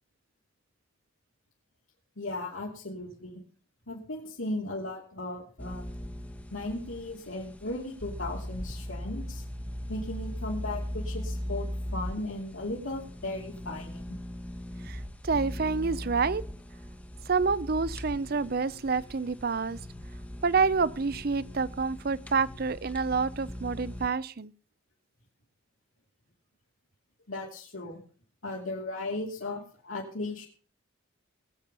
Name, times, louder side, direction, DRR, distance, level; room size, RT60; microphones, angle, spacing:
voice 1, 2.2-3.4 3.9-6.0 6.5-9.4 9.9-11.7 11.9-14.0 27.3-28.0 28.4-30.4, left 2 dB, 85° left, -3 dB, 2.9 m, -36 dB
sound 1, 5.6-24.1, equal, 5° left, 1.0 m, -39 dB
voice 2, 14.8-16.4 17.3-19.8 20.4-24.5, right 4 dB, 50° right, 20 dB, 0.6 m, -28 dB
19.5 x 8.5 x 5.5 m, 0.42 s
head